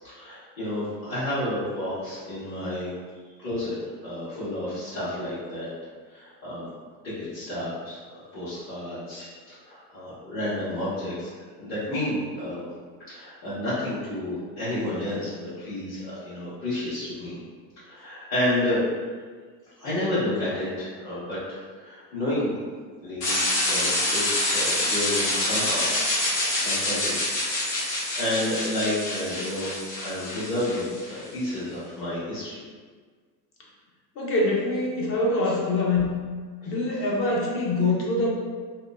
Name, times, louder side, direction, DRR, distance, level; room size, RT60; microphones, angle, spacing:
voice 1, 0.0-2.9 3.4-3.7 4.0-5.7 6.1-6.7 7.0-11.3 11.6-12.7 13.1-17.4 17.8-18.8 19.8-22.5 23.0-23.4 23.6-25.8 26.1-27.2 27.8-29.7 30.0-32.6 35.4-35.5 36.6-36.9, left 1 dB, 50° left, -14 dB, 1.4 m, -31 dB
sound 1, 23.2-31.2, left 1 dB, 80° left, 1.3 m, -26 dB
voice 2, 34.2-36.1 36.7-38.3, left 2 dB, 30° left, -2 dB, 0.4 m, -24 dB
2.8 x 2.1 x 2.3 m, 1.5 s
supercardioid pair, 115°, 49 cm